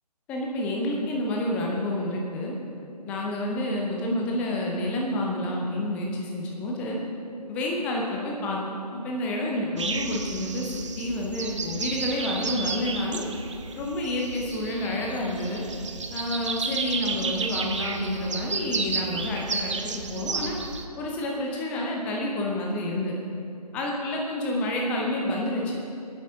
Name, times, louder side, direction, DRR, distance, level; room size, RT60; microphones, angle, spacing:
voice 1, 0.3-2.5 3.1-7.0 7.5-8.6 8.9-13.2 13.7-15.6 16.1-20.6 21.0-23.2 23.7-25.8, left 1 dB, 5° left, -1 dB, 0.6 m, -29 dB
sound 1, 9.8-20.9, right 4 dB, 45° right, 0.8 m, -32 dB
23.5 x 9.4 x 2.7 m, 2.7 s
figure-of-eight pair, 145°, 21 cm